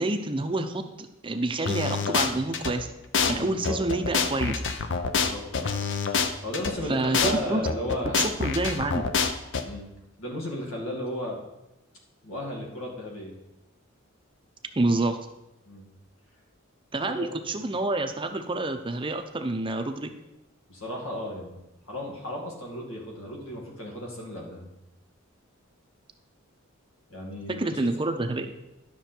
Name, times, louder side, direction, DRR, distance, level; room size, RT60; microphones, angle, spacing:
voice 1, 0.0-2.9 3.3-4.6 6.9-7.6 8.1-9.0 14.8-15.2 16.9-20.1 27.5-28.5, right 2 dB, 25° right, 7 dB, 0.6 m, -28 dB
sound 1, 1.7-2.7 3.1-3.3 3.6-6.7 7.1-7.3 7.6-9.6, left 5 dB, 60° left, 0.7 m, -26 dB
voice 2, 3.3-3.8 5.1-5.7 6.4-8.3 9.6-9.9 10.2-11.4 12.2-13.3 15.7-15.9 17.0-17.6 20.7-21.6 21.9-24.7 27.1-27.9, left 1 dB, 85° left, -1 dB, 2.3 m, -35 dB
11.0 x 6.1 x 4.5 m, 0.92 s
head